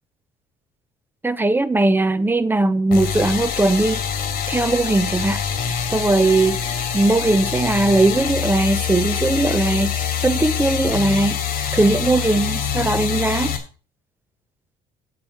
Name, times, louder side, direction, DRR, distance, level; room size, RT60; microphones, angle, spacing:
voice 1, 1.2-4.0 4.5-5.4 5.9-6.6 6.9-11.4 11.7-13.6, right 2 dB, 10° right, 0.7 m, -19 dB
sound 1, 2.9-13.6, left 8 dB, 60° left, 2.8 m, -25 dB
8.6 x 7.1 x 6.1 m
cardioid pair, 110°, 17 cm